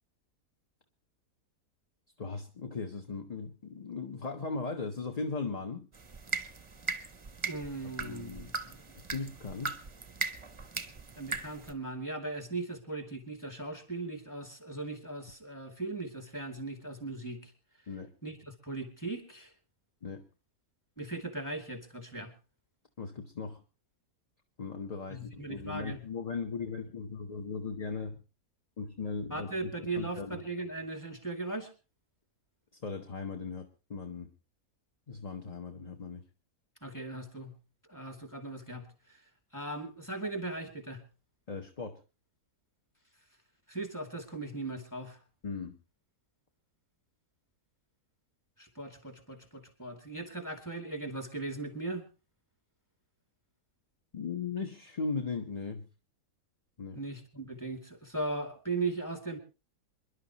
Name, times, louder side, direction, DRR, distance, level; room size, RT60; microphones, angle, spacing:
voice 1, 2.2-5.9 8.0-8.5 8.9-9.8 17.9-18.1 20.0-20.2 23.0-23.6 24.6-28.2 28.8-30.4 32.8-34.3 35.1-36.2 41.5-42.0 45.4-45.7 54.1-55.9 56.8-57.0, left 4 dB, 30° left, 4 dB, 1.0 m, -38 dB
sound 1, 5.9-11.7, right 4 dB, 25° right, 0.7 m, -39 dB
voice 2, 7.4-8.9 11.2-17.5 18.2-19.5 21.0-22.3 25.1-26.0 29.3-31.7 36.8-37.5 37.9-38.9 39.5-41.0 43.7-45.2 48.6-52.0 56.9-59.4, right 2 dB, 10° left, 5 dB, 2.4 m, -38 dB
27.0 x 11.5 x 3.0 m, 0.30 s
omnidirectional pair, 1.7 m